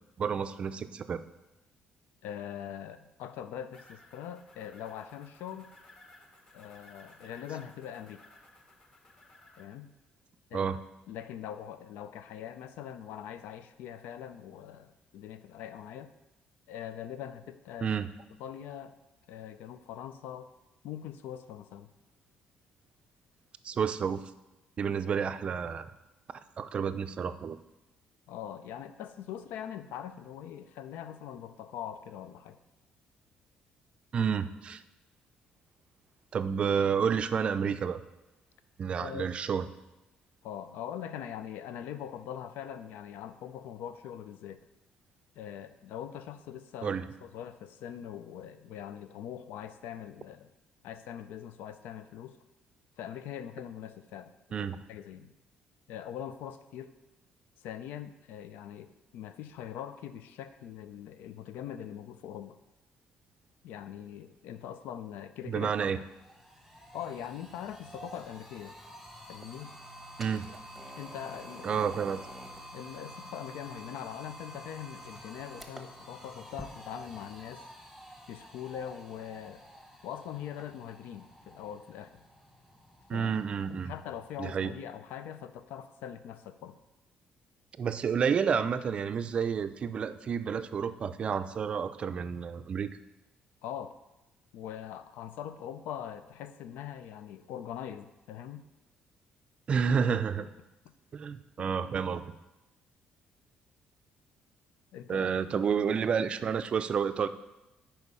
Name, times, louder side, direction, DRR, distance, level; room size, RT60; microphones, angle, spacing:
voice 1, 0.2-1.2 10.5-10.8 17.8-18.1 23.6-24.2 24.8-25.9 26.6-27.6 34.1-34.8 36.3-38.0 38.8-39.6 46.8-47.1 54.5-54.8 65.5-66.0 70.2-70.5 71.6-72.2 83.1-83.9 84.4-84.7 87.8-92.9 99.7-100.5 101.1-102.2 105.1-107.3, right 6 dB, 35° right, 11 dB, 0.4 m, -30 dB
voice 2, 2.2-5.7 6.5-8.2 9.6-9.9 10.5-10.7 11.1-16.1 16.7-17.9 18.4-18.9 19.3-20.5 20.8-21.9 28.3-32.6 39.0-39.3 40.4-44.6 45.4-50.5 50.8-52.4 53.0-55.3 55.9-56.9 57.6-62.6 63.6-65.7 66.9-68.8 69.3-69.7 71.0-71.8 72.7-77.7 78.3-79.6 80.0-82.2 83.1-83.3 83.8-86.8 93.6-94.0 94.5-98.7 100.4-100.5 101.6-101.7 104.9-105.4, left 9 dB, 90° left, 12 dB, 0.5 m, -42 dB
sound 1, 3.7-9.6, left 2 dB, 25° left, 1.3 m, -57 dB
sound 2, 65.6-84.6, equal, ahead, 1.0 m, -49 dB
9.7 x 4.5 x 5.5 m, 0.99 s
cardioid pair, 150°, 3 cm